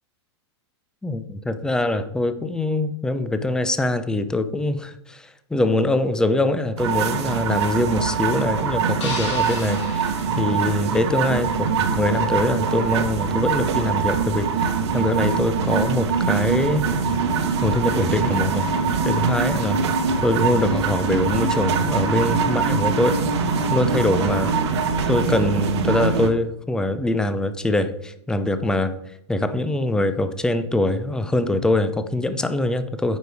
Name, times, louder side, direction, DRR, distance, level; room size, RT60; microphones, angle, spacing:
voice 1, 1.0-10.1 10.4-16.9 17.6-18.7 19.0-19.8 20.2-23.2 23.7-24.5 25.1-29.0 29.3-33.2, left 1 dB, 5° left, 11 dB, 0.6 m, -23 dB
sound 1, 6.8-26.3, right 5 dB, 70° right, 1.3 m, -23 dB
sound 2, 9.0-11.3, left 4 dB, 85° left, 3.2 m, -35 dB
9.3 x 5.2 x 4.8 m, 0.75 s
hypercardioid pair, 130°, 15 cm